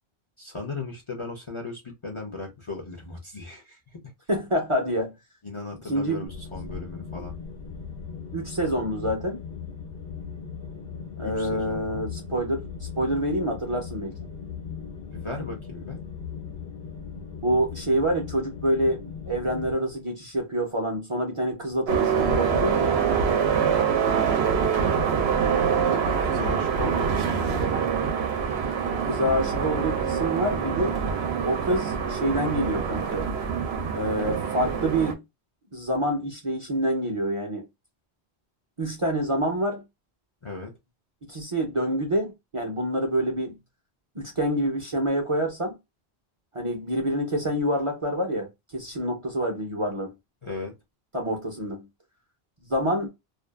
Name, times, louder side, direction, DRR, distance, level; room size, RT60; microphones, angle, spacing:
voice 1, 0.4-4.1 5.4-7.4 11.2-12.1 15.1-16.0 26.2-27.9 40.4-40.7 50.4-50.8, left 3 dB, 35° left, 0.6 m, -37 dB
voice 2, 4.3-5.1 5.9-6.3 8.3-9.4 11.2-14.2 17.4-22.9 29.0-31.0 31.4-33.3 33.9-35.2 35.7-37.6 38.8-39.8 41.2-43.6 44.1-45.8 46.5-50.1 51.1-51.9 52.6-53.1, right 1 dB, 35° right, 0.6 m, -27 dB
sound 1, 6.3-19.7, left 6 dB, 70° left, 1.1 m, -38 dB
sound 2, 21.9-35.1, right 6 dB, 80° right, 0.8 m, -25 dB
2.5 x 2.3 x 2.2 m
omnidirectional pair, 1.1 m